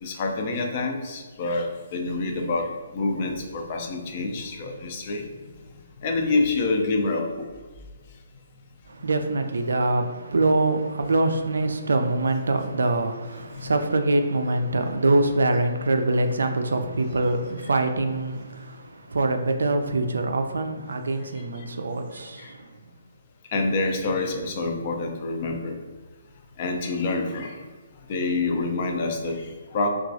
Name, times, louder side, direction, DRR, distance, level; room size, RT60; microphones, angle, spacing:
voice 1, 0.0-5.2 6.0-7.5 13.5-13.6 22.4-22.5 23.5-25.8 26.6-27.6 28.1-29.9, left 3 dB, 40° left, 0.5 m, -27 dB
voice 2, 8.9-22.8, right 2 dB, 75° right, 0.3 m, -24 dB
3.0 x 2.3 x 2.5 m
figure-of-eight pair, 140°, 0 cm